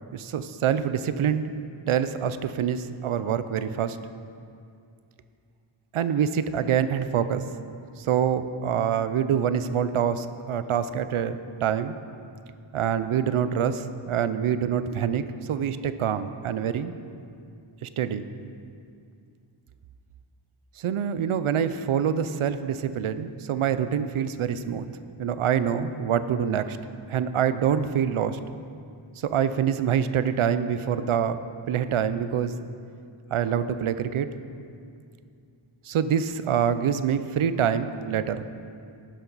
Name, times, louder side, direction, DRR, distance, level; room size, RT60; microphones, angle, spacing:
voice 1, 0.1-1.5 1.9-4.0 5.9-7.4 8.0-12.0 12.7-16.9 17.8-18.2 20.8-26.8 27.1-28.4 29.2-31.4 31.7-32.5 33.3-34.3 35.8-38.5, right 8 dB, 85° right, 12 dB, 0.6 m, -26 dB
13.0 x 10.0 x 4.0 m, 2.4 s
wide cardioid pair, 70°, 49 cm